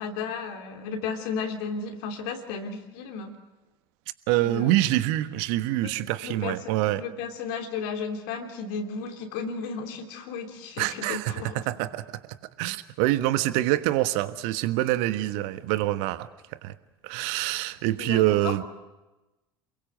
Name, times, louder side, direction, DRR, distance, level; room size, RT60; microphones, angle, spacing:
voice 1, 0.0-3.3 4.4-4.7 5.8-5.9 6.2-6.6 7.0-11.6 18.0-18.5, left 5 dB, 60° left, 4 dB, 3.2 m, -34 dB
voice 2, 4.3-7.0 10.8-16.7 17.0-18.6, right 15 dB, 55° right, 12 dB, 1.4 m, -26 dB
28.5 x 22.5 x 7.8 m, 1.1 s
figure-of-eight pair, 75°, 13 cm